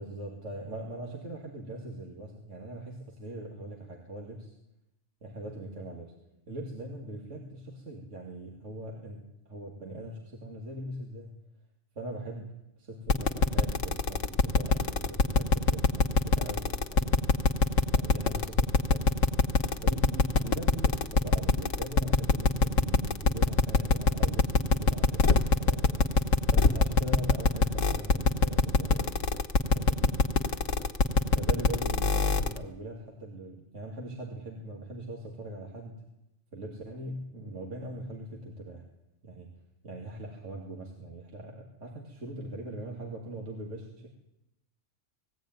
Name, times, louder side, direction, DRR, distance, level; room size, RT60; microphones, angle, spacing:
voice 1, 0.0-4.5 5.2-6.1 6.5-11.4 12.0-17.3 17.9-19.2 19.8-26.1 26.5-29.4 29.7-30.3 31.3-36.0 36.5-38.8 39.2-39.6 39.8-44.1, right 1 dB, 70° right, -1 dB, 2.6 m, -41 dB
sound 1, 13.1-32.6, left 4 dB, 75° left, 1.5 m, -22 dB
19.5 x 16.0 x 9.3 m, 0.87 s
omnidirectional pair, 1.3 m